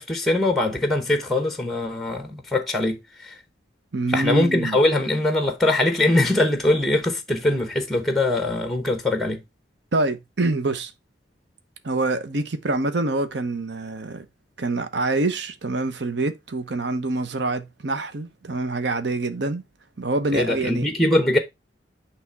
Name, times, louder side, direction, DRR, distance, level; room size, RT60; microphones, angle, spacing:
voice 1, 0.0-3.4 4.1-9.4 20.3-21.4, left 1 dB, ahead, 0.9 m, -22 dB
voice 2, 3.9-4.8 9.9-10.9 11.8-14.3 14.6-19.6 20.0-20.9, right 2 dB, 65° right, 0.8 m, -26 dB
8.4 x 3.4 x 4.6 m
head